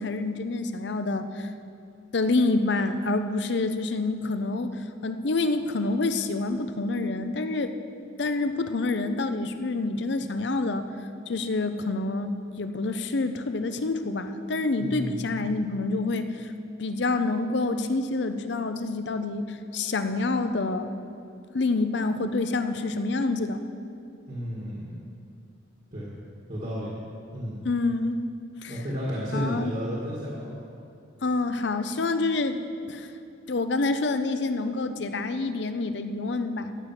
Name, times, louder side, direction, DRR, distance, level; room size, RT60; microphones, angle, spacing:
voice 1, 0.0-1.5 2.1-4.8 5.0-7.7 8.2-10.9 11.3-16.5 16.8-20.9 21.5-23.6 27.6-28.2 28.6-28.7 29.3-29.7 31.2-32.6 32.9-33.1 33.5-36.7, left 3 dB, 60° left, 9 dB, 0.6 m, -27 dB
voice 2, 14.8-15.3 24.3-25.0 25.9-26.1 26.5-27.0 27.3-27.6 28.7-30.6, equal, 45° right, -6 dB, 1.8 m, -32 dB
13.5 x 8.1 x 5.9 m, 2.5 s
head